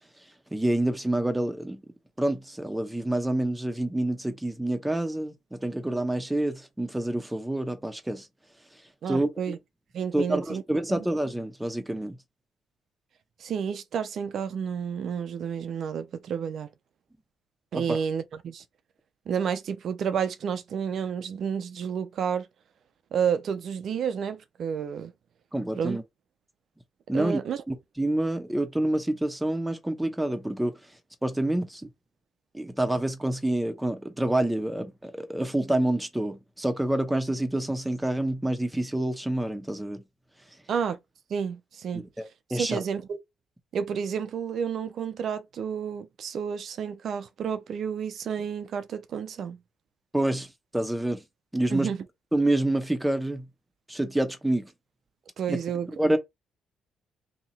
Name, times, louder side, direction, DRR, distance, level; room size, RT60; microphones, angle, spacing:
voice 1, 0.5-1.8 2.2-8.3 9.1-9.6 10.1-12.2 17.7-18.0 25.5-26.0 27.1-27.4 27.7-30.7 31.2-31.9 32.5-40.0 41.9-42.8 50.1-50.5 50.7-51.2 51.5-51.9 52.3-53.4 53.9-54.7 55.5-55.6 55.9-56.2, right 1 dB, 5° right, 0.9 m, -27 dB
voice 2, 9.0-9.6 9.9-10.6 10.9-11.1 13.4-16.7 17.7-18.6 19.3-22.5 23.1-25.1 25.8-26.0 27.1-27.6 40.7-41.0 41.3-42.1 42.5-43.2 43.7-49.6 51.7-52.0 55.4-56.2, right 7 dB, 65° right, 0.5 m, -30 dB
2.9 x 2.8 x 4.1 m
cardioid pair, 90°, 0 cm